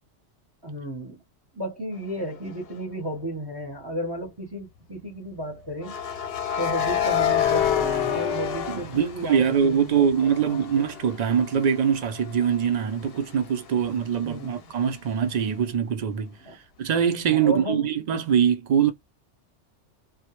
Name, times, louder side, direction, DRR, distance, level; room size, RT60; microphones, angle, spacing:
voice 1, 0.6-1.2 1.5-6.0 6.6-10.9 14.2-14.6 16.4-16.6 17.3-17.9, equal, 25° right, 0.6 m, -33 dB
sound 1, 2.5-2.7 5.8-9.7 10.1-13.7, left 9 dB, 65° left, 0.7 m, -28 dB
voice 2, 8.7-18.9, right 8 dB, 65° right, 0.4 m, -23 dB
2.2 x 2.1 x 2.9 m
omnidirectional pair, 1.2 m